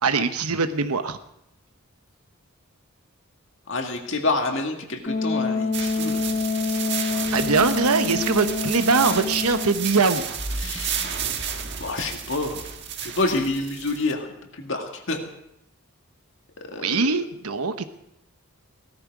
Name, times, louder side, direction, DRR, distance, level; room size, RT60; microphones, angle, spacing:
voice 1, 0.0-1.2 7.3-10.4 16.8-17.8, right 4 dB, 85° right, 9 dB, 1.1 m, -22 dB
voice 2, 3.7-6.4 10.6-11.1 11.8-12.7 13.0-15.2 16.6-17.1, left 2 dB, 60° left, 3 dB, 2.1 m, -28 dB
Wind instrument woodwind instrument, 5.1-9.9, left 4 dB, 35° left, 1.5 m, -27 dB
sound 1, 5.7-14.1, right 8 dB, 50° right, 1.4 m, -32 dB
sound 2, 10.4-13.9, right 1 dB, ahead, 0.9 m, -38 dB
17.5 x 13.5 x 4.8 m, 0.81 s
head